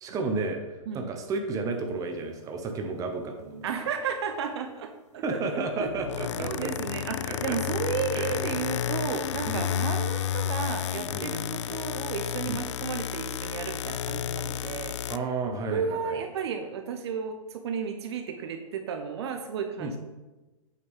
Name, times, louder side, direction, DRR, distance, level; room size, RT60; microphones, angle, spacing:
voice 1, 0.0-3.7 5.2-6.7 7.1-7.6 8.1-8.4 9.5-9.7 11.1-11.4 12.5-12.6 15.1-16.2 19.8-19.9, right 3 dB, 20° right, 4 dB, 1.0 m, -32 dB
voice 2, 3.6-6.1 6.4-15.1 15.7-20.0, right 6 dB, 50° right, 6 dB, 0.8 m, -33 dB
sound 1, 5.9-15.2, left 10 dB, 55° left, 0.4 m, -31 dB
8.3 x 6.3 x 3.7 m, 1.1 s
figure-of-eight pair, 120°, 18 cm